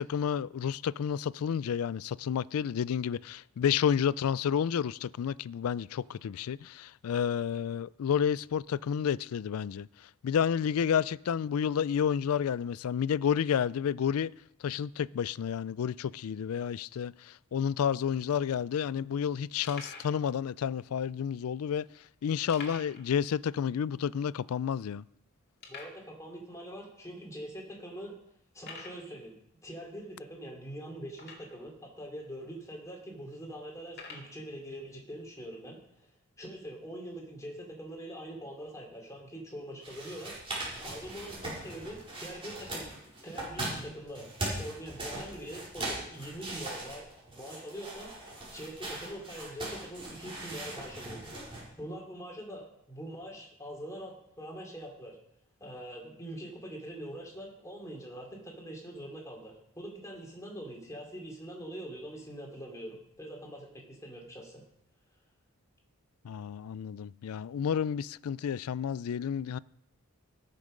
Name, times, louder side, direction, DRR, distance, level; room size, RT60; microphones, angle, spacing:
voice 1, 0.0-9.9 10.2-14.3 14.6-17.1 17.5-21.9 22.2-25.0 66.2-69.6, left 8 dB, 80° left, 0.3 m, -30 dB
sound 1, 19.6-20.2 20.9-21.0 22.5-23.1 23.4-23.5 23.9-24.0 24.6-24.7 25.6-26.0 26.8-26.9 27.5-27.6 28.6-29.0 31.1-31.7 32.5-32.6 33.9-34.3, left 4 dB, 50° left, 2.2 m, -46 dB
voice 2, 25.7-28.2 28.5-29.3 29.6-35.8 36.4-40.4 40.8-43.0 43.2-44.2 44.6-47.1 47.3-55.2 55.6-64.6, equal, 15° left, 3.0 m, -43 dB
sound 2, 39.8-51.6, right 2 dB, 25° right, 4.7 m, -40 dB
19.0 x 6.7 x 5.2 m
head